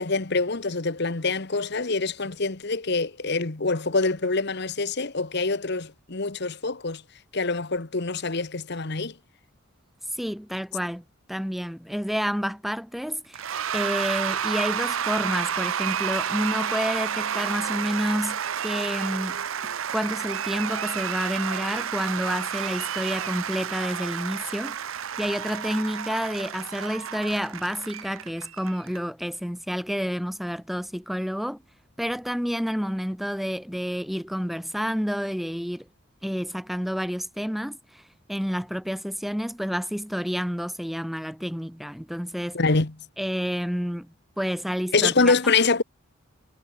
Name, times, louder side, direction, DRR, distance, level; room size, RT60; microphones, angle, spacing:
voice 1, 0.0-7.0 7.3-9.1 42.5-42.9 44.9-45.8, left 3 dB, 55° left, 1.3 m, -25 dB
voice 2, 10.1-11.0 11.3-19.4 19.9-24.8 25.2-31.6 32.0-35.9 36.2-42.6 43.2-45.3, equal, ahead, 0.7 m, -29 dB
Cheering / Applause / Crowd, 13.3-29.0, right 8 dB, 75° right, 0.7 m, -30 dB
head